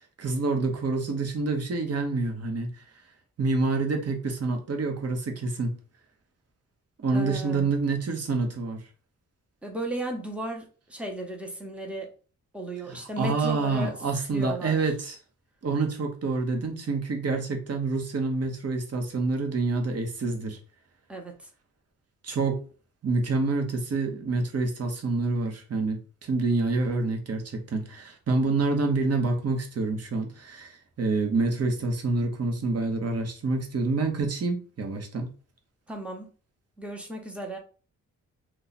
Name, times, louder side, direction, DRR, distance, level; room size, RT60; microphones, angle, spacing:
voice 1, 0.2-2.8 3.4-5.7 7.0-8.8 12.9-15.2 15.6-20.6 22.2-22.6 23.0-35.3, right 3 dB, 50° right, 4 dB, 0.9 m, -27 dB
voice 2, 7.1-7.7 9.6-12.1 12.5-14.0 14.3-14.8 21.1-21.5 35.9-36.3 36.8-37.6, right 1 dB, 5° right, 1 dB, 0.8 m, -35 dB
2.8 x 2.3 x 4.0 m, 0.38 s
cardioid pair, 100°, 31 cm